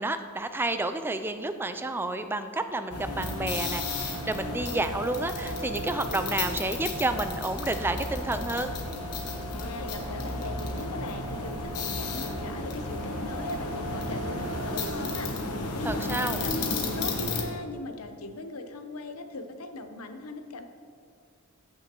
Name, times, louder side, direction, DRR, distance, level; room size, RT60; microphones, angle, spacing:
voice 1, 0.0-8.7 15.8-16.4, right 2 dB, 10° right, 9 dB, 0.3 m, -30 dB
sound 1, 2.9-17.4, left 2 dB, 90° left, 1.1 m, -33 dB
voice 2, 9.5-20.6, left 2 dB, 70° left, 7 dB, 0.7 m, -39 dB
14.5 x 6.2 x 3.0 m, 2.2 s
head